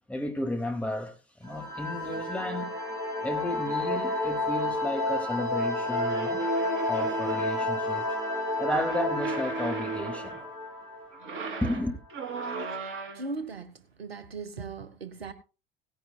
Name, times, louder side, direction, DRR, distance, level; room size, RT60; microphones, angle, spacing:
voice 1, 0.1-2.7 3.2-6.4 6.9-8.2 8.6-10.4 11.6-12.0, left 1 dB, 5° left, 2.3 m, -33 dB
sound 1, 1.4-11.8, left 2 dB, 10° right, 6.6 m, -31 dB
sound 2, 5.9-7.7 8.7-10.5 11.1-13.4, right 3 dB, 40° right, 3.2 m, -36 dB
voice 2, 13.1-13.7 14.0-15.3, right 4 dB, 85° right, 1.2 m, -37 dB
17.5 x 10.5 x 2.3 m
figure-of-eight pair, 75°, 30 cm